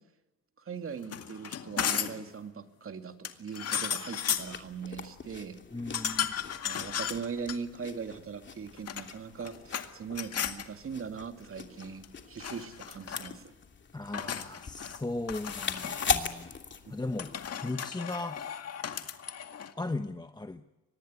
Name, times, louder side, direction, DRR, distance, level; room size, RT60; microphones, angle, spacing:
voice 1, 0.6-5.6 6.6-13.5 16.9-17.0, right 6 dB, 45° right, 7 dB, 2.6 m, -40 dB
sound 1, 1.0-2.3 3.2-4.6 5.9-7.6 8.7-9.9 10.1-10.6 11.8-12.2 12.4-13.3 14.1-15.0 15.3-16.2 17.2-19.7, left 8 dB, 55° left, 2.1 m, -35 dB
sound 2, 4.2-17.5, left 5 dB, 35° left, 2.9 m, -40 dB
voice 2, 5.7-6.3 13.9-16.5 16.9-17.3 17.6-18.4 19.8-20.6, left 2 dB, 15° left, 8 dB, 1.1 m, -37 dB
24.5 x 19.0 x 9.7 m, 1.0 s
cardioid pair, 90°, 30 cm